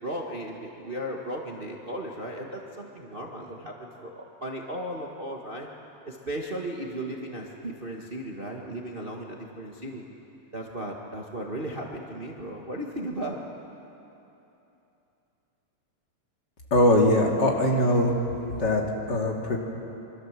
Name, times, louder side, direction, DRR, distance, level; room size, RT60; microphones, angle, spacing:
voice 1, 0.0-5.7 6.0-10.0 10.5-13.4, right 1 dB, 65° right, -1 dB, 0.5 m, -36 dB
voice 2, 16.7-18.1 18.5-18.8 19.1-19.6, left 1 dB, 35° left, 0 dB, 2.7 m, -21 dB
27.0 x 24.5 x 7.5 m, 3.0 s
omnidirectional pair, 3.9 m